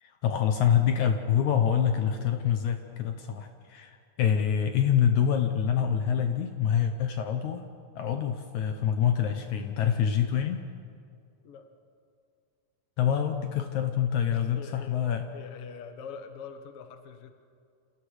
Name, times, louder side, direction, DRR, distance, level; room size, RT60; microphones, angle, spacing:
voice 1, 0.0-7.7 8.0-10.6 13.0-15.3, left 8 dB, 70° left, 6 dB, 2.2 m, -26 dB
voice 2, 14.3-15.0 15.3-17.3, left 6 dB, 55° left, 7 dB, 2.0 m, -43 dB
29.0 x 28.5 x 5.0 m, 2.4 s
omnidirectional pair, 3.9 m